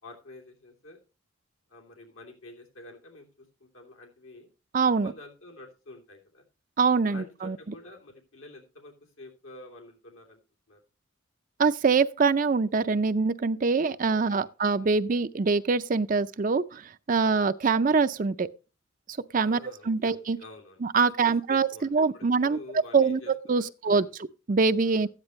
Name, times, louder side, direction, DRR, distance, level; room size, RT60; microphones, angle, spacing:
voice 1, 0.0-1.0 1.7-4.5 5.0-6.4 7.1-10.4 10.7-10.8 14.1-14.9 19.4-20.8 21.2-21.9 22.1-24.1 24.8-25.1, left 2 dB, 80° left, 3.0 m, -48 dB
voice 2, 4.7-5.1 6.8-7.8 11.6-18.5 19.1-20.4 20.8-22.6 22.9-25.1, right 4 dB, 40° right, 0.4 m, -24 dB
13.5 x 9.7 x 3.1 m
head